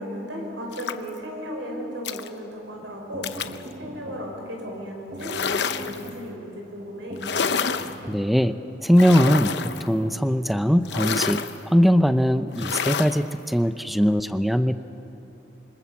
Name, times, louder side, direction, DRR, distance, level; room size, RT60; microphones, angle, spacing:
voice 1, 0.0-3.3 3.8-7.3, equal, 85° right, 1 dB, 6.1 m, -35 dB
sound 1, 0.7-1.2 2.1-2.3 3.2-3.6 5.2-6.1 7.2-8.0 8.9-9.9 10.9-11.6 12.5-13.2, left 6 dB, 65° left, 0.8 m, -28 dB
sound 2, 2.8-10.5, right 1 dB, 40° right, 1.0 m, -42 dB
voice 2, 8.1-11.4 11.7-14.8, equal, ahead, 10 dB, 0.6 m, -20 dB
27.0 x 25.0 x 7.2 m, 3.0 s
head